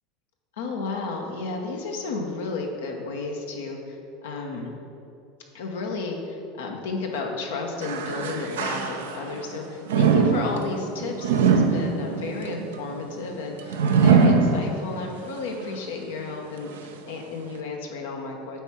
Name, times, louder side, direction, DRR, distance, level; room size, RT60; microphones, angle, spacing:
voice 1, 0.6-4.7 5.5-16.7 17.1-18.6, left 3 dB, 75° left, 2 dB, 1.1 m, -32 dB
sound 1, 7.8-9.4 9.9-15.1 15.6-15.7 16.6-16.7, right 5 dB, 80° right, 0.6 m, -22 dB
8.9 x 3.5 x 5.8 m, 2.7 s
hypercardioid pair, 80°, 0 cm